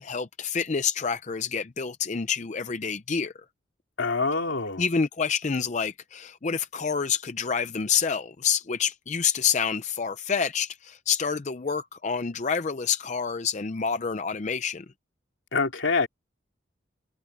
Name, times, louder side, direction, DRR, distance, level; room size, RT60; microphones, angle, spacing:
voice 1, 0.0-3.3 4.8-14.8, left 6 dB, 35° left, 0.5 m, -28 dB
voice 2, 4.0-4.8 15.5-16.1, left 4 dB, 75° left, 2.6 m, -25 dB
head